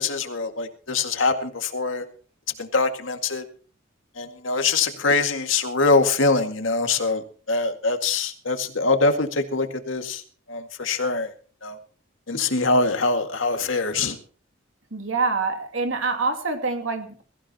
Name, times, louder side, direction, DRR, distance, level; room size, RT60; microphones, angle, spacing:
voice 1, 0.0-2.1 2.6-3.4 4.2-10.2 10.5-11.3 11.6-11.8 12.3-14.2, left 3 dB, 75° left, 6 dB, 2.1 m, -23 dB
voice 2, 14.9-17.2, right 4 dB, 85° right, 5 dB, 2.6 m, -26 dB
22.5 x 15.0 x 2.9 m, 0.41 s
head